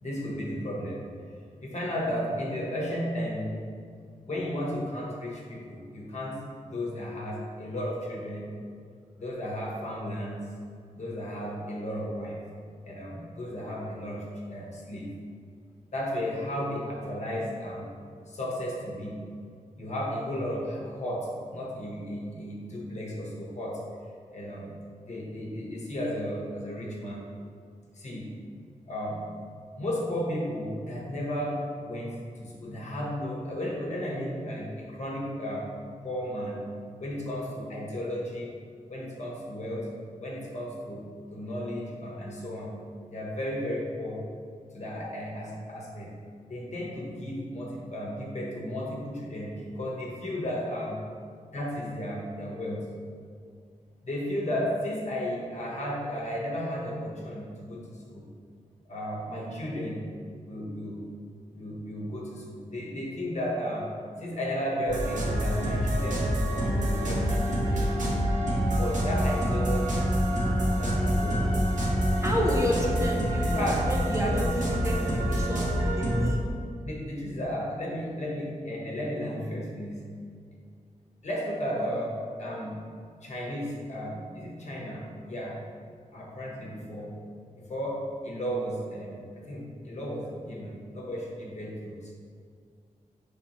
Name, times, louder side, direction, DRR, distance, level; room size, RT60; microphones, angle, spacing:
voice 1, 0.0-1.0 1.6-3.5 4.2-8.5 9.2-10.4 10.9-12.4 12.8-15.1 15.9-17.9 18.3-19.2 19.8-23.8 24.3-24.7 25.0-27.2 27.9-28.3 28.9-29.2 29.8-35.7 36.0-36.6 37.0-38.5 38.9-39.9 40.2-42.7 43.1-44.2 44.7-46.1 46.5-51.0 51.5-52.9 54.0-58.3 58.9-60.1 60.4-61.1 61.5-63.9 64.2-68.2 68.8-71.5 72.7-72.8 73.5-73.9 76.8-80.0 81.2-82.8 83.2-85.6 86.1-87.1 87.5-92.1, equal, 55° left, -3 dB, 0.9 m, -34 dB
sound 1, 64.9-76.3, equal, 65° right, 0.9 m, -26 dB
voice 2, 72.2-76.4, equal, 20° right, -1 dB, 0.5 m, -30 dB
5.1 x 3.3 x 3.0 m, 2.2 s
wide cardioid pair, 140°, 14 cm